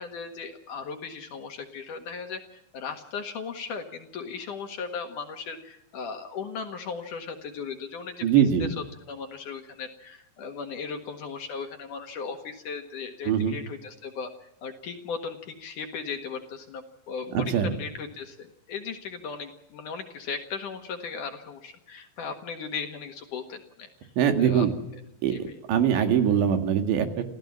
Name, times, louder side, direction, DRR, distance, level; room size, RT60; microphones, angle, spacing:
voice 1, 0.0-8.2 8.6-8.7 9.1-23.9 24.4-24.7 25.3-25.5, left 5 dB, 55° left, 5 dB, 2.6 m, -37 dB
voice 2, 8.2-8.7 13.3-13.6 17.3-17.7 24.2-24.7 25.2-25.4 25.7-27.2, right 8 dB, 80° right, 7 dB, 4.2 m, -22 dB
27.5 x 16.0 x 7.4 m, 0.87 s
omnidirectional pair, 5.1 m